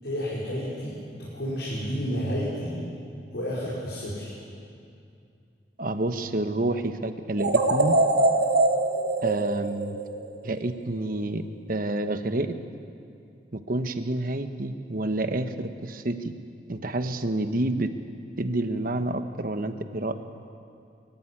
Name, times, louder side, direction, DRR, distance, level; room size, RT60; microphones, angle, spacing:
voice 1, 0.0-2.9 3.3-4.3, equal, 75° left, -7 dB, 5.1 m, -31 dB
voice 2, 5.8-7.9 9.2-10.0 10.4-11.4 11.7-12.5 13.5-16.3 16.7-17.9 18.4-20.2, right 2 dB, 50° right, 8 dB, 1.1 m, -28 dB
sound 1, 7.4-10.6, right 2 dB, 70° right, 2.4 m, -23 dB
23.0 x 15.0 x 9.9 m, 2.5 s
head